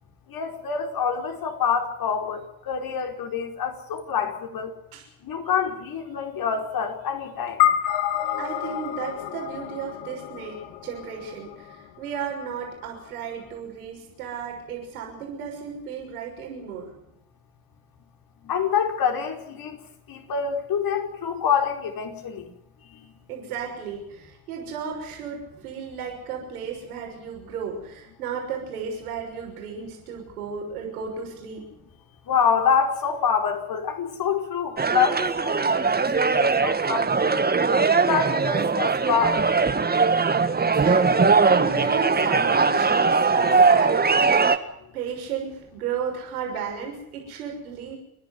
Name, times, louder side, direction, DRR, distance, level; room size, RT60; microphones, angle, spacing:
voice 1, 0.3-4.7 5.2-7.7 18.4-19.8 20.1-22.5 22.9-23.1 32.3-37.4 38.1-39.4, left 7 dB, 55° left, 4 dB, 5.1 m, -26 dB
sound 1, 7.6-12.2, left 12 dB, 75° left, 1.9 m, -28 dB
voice 2, 8.4-10.6 10.8-16.9 23.3-31.7 40.6-44.6 44.9-48.0, right 6 dB, 90° right, 1 dB, 6.4 m, -34 dB
sound 2, 34.8-44.6, right 4 dB, 20° right, 1.9 m, -20 dB
29.5 x 11.5 x 9.6 m, 0.81 s
hypercardioid pair, 70°, 43 cm